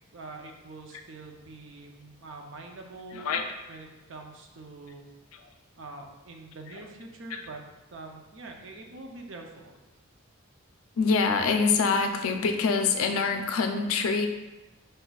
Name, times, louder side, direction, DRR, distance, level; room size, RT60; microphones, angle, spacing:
voice 1, 0.1-3.3 3.7-5.0 5.8-7.6 7.9-9.8, right 3 dB, 60° right, 2 dB, 0.6 m, -44 dB
voice 2, 3.1-3.5 6.7-6.9 7.3-7.5 11.0-14.3, left 4 dB, 75° left, 6 dB, 0.4 m, -25 dB
5.1 x 4.0 x 2.3 m, 1.1 s
head